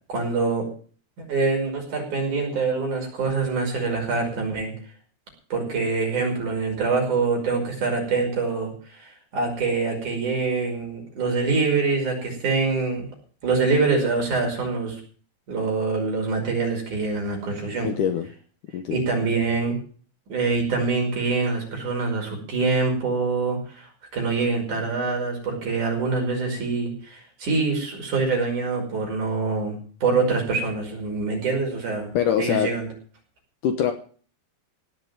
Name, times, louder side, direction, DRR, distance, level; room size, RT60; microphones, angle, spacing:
voice 1, 0.1-0.6 1.2-4.7 5.5-13.1 13.4-15.0 15.5-17.9 18.9-19.8 20.3-32.1 32.4-32.9, right 4 dB, 50° right, 1 dB, 6.7 m, -25 dB
voice 2, 17.8-18.3 18.7-19.0 32.1-32.7 33.6-33.9, left 9 dB, 65° left, 7 dB, 2.3 m, -23 dB
17.5 x 6.8 x 9.0 m, 0.43 s
omnidirectional pair, 4.5 m